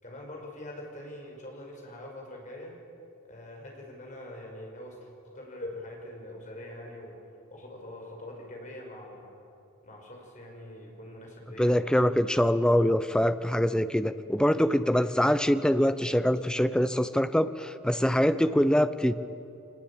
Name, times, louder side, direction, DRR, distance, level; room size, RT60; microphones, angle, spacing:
voice 1, 0.0-2.7 3.3-5.1 5.3-7.1 7.5-9.3 9.8-12.3 14.6-14.7, left 1 dB, 35° left, 0 dB, 5.8 m, -43 dB
voice 2, 11.6-19.1, equal, 5° left, 12 dB, 0.6 m, -24 dB
24.0 x 20.5 x 8.8 m, 2.6 s
head